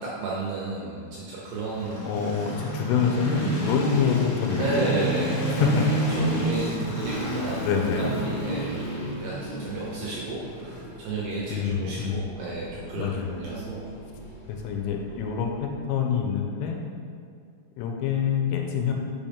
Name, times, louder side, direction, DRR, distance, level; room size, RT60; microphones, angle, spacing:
voice 1, 0.0-2.1 3.4-3.7 4.6-7.6 8.0-8.8 9.2-9.3 9.6-13.9, right 3 dB, 80° right, -5 dB, 2.5 m, -32 dB
sound 1, 1.4-15.5, right 1 dB, 55° left, 2.7 m, -31 dB
voice 2, 2.0-5.3 5.6-6.0 7.6-8.2 11.5-12.2 13.0-13.3 14.5-16.8 17.8-18.9, left 7 dB, 85° left, 2 dB, 3.2 m, -26 dB
7.2 x 5.4 x 3.5 m, 2.3 s
omnidirectional pair, 5.8 m